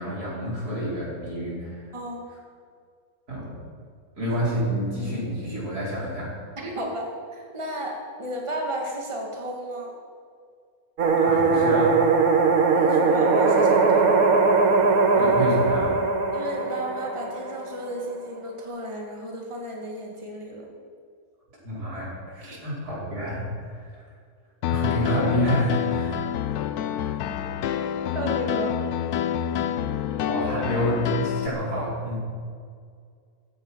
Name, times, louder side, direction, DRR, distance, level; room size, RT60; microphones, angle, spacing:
voice 1, 0.0-1.9 3.3-3.5 4.2-6.3 11.2-12.0 15.2-15.9 21.6-24.0 24.7-26.4 26.7-27.2 30.2-32.2, equal, 85° right, -6 dB, 5.8 m, -28 dB
voice 2, 1.9-2.2 6.6-9.9 12.6-14.1 16.3-20.6 22.4-22.6 28.1-28.7, right 1 dB, 20° right, -1 dB, 2.2 m, -33 dB
sound 1, 11.0-17.9, right 4 dB, 70° right, 1.7 m, -20 dB
Piano, 24.6-31.5, left 9 dB, 80° left, 1.2 m, -27 dB
15.5 x 14.5 x 5.7 m, 2.1 s
omnidirectional pair, 1.6 m